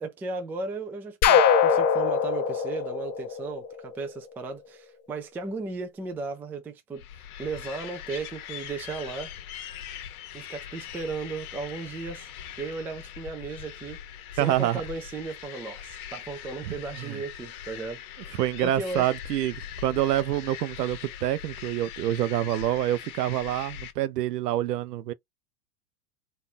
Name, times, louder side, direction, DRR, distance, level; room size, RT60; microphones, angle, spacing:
voice 1, 0.0-7.0 7.4-9.3 10.3-12.3 12.6-14.0 14.4-18.0 18.6-19.1, right 4 dB, 5° right, 0.3 m, -35 dB
sound 1, 1.2-4.0, left 7 dB, 30° left, 0.9 m, -22 dB
sound 2, 7.0-23.9, left 10 dB, 65° left, 1.1 m, -41 dB
voice 2, 14.4-14.8 16.6-17.2 18.3-25.1, right 13 dB, 75° right, 0.7 m, -27 dB
4.2 x 2.6 x 3.7 m
hypercardioid pair, 115°, 47 cm